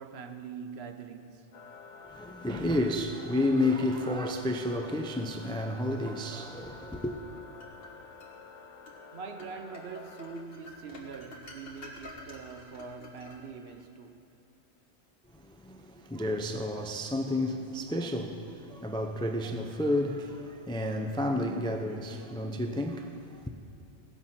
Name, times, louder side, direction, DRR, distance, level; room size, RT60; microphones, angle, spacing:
voice 1, 0.0-1.5 9.1-14.2, right 5 dB, 65° right, 0.9 m, -43 dB
sound 1, 1.5-10.4, left 5 dB, 85° left, 1.1 m, -50 dB
voice 2, 2.1-7.2 15.3-23.5, left 1 dB, 5° left, 0.3 m, -31 dB
sound 2, 7.0-8.3 8.9-9.0 9.4-13.8, left 1 dB, 55° left, 1.7 m, -49 dB
17.0 x 7.0 x 5.7 m
omnidirectional pair, 1.2 m